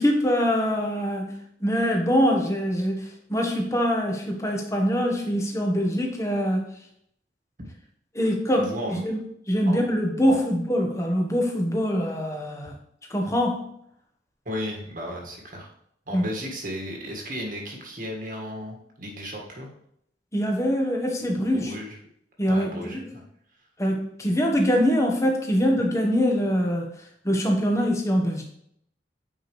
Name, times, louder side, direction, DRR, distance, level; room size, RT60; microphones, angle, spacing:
voice 1, 0.0-1.3 1.6-6.7 8.1-9.2 9.5-12.7 13.1-13.7 16.1-16.2 20.3-21.7 22.4-23.1 23.8-26.8 27.2-28.4, equal, 15° left, 1 dB, 1.2 m, -24 dB
voice 2, 8.6-9.1 9.7-9.8 10.3-10.4 14.5-15.7 16.1-19.7 21.3-21.4 21.7-22.0 22.5-23.2, equal, 50° right, 0 dB, 1.7 m, -34 dB
8.8 x 5.0 x 3.2 m, 0.72 s
head